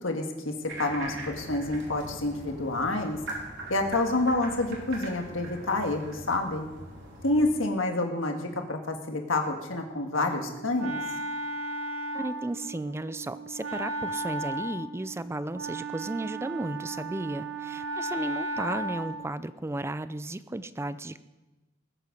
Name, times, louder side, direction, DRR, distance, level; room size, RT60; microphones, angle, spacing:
voice 1, 0.0-3.2 3.7-6.7 7.2-11.0, left 2 dB, 70° left, 3 dB, 1.8 m, -28 dB
sound 1, 0.7-7.5, right 1 dB, 60° right, 3.5 m, -41 dB
Wind instrument woodwind instrument, 10.2-19.3, right 2 dB, 85° right, 1.1 m, -35 dB
voice 2, 12.1-21.2, right 2 dB, 15° right, 14 dB, 0.4 m, -34 dB
20.0 x 8.0 x 5.2 m, 1.1 s
head